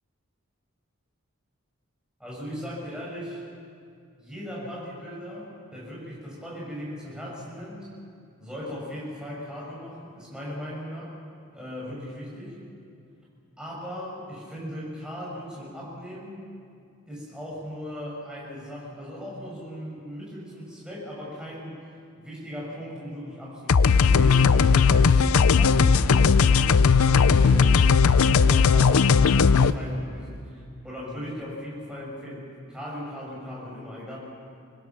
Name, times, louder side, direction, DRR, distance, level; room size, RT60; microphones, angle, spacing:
voice 1, 2.2-3.4 4.2-7.9 8.4-11.1 11.5-12.6 13.6-16.5 17.1-21.8 22.2-27.9 28.2-34.2, equal, 5° right, -6 dB, 6.5 m, -38 dB
sound 1, 23.7-29.7, left 5 dB, 90° left, 0.5 m, -18 dB
25.0 x 20.5 x 6.1 m, 2.4 s
head